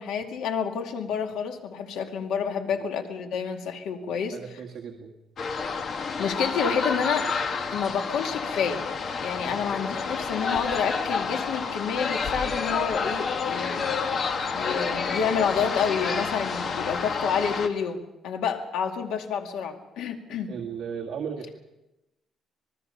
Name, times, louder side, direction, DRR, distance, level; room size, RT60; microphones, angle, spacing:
voice 1, 0.0-4.4 6.2-7.3 7.7-8.8 9.2-13.9 14.5-20.5, left 6 dB, 85° left, 4 dB, 2.3 m, -29 dB
voice 2, 4.3-5.1 9.4-9.6 20.5-21.6, right 7 dB, 50° right, 1 dB, 1.9 m, -36 dB
sound 1, 5.4-17.7, left 5 dB, 45° left, 1.6 m, -29 dB
26.5 x 20.0 x 5.6 m, 0.98 s
cardioid pair, 145°, 0 cm